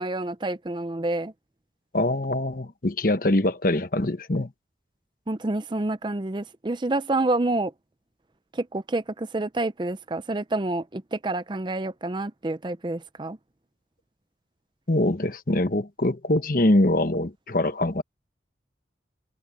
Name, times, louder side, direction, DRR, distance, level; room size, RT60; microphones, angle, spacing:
voice 1, 0.0-1.3 5.3-7.7 8.5-13.4, right 2 dB, 25° right, 0.5 m, -28 dB
voice 2, 1.9-4.5 14.9-18.0, left 1 dB, 50° left, 1.2 m, -23 dB
head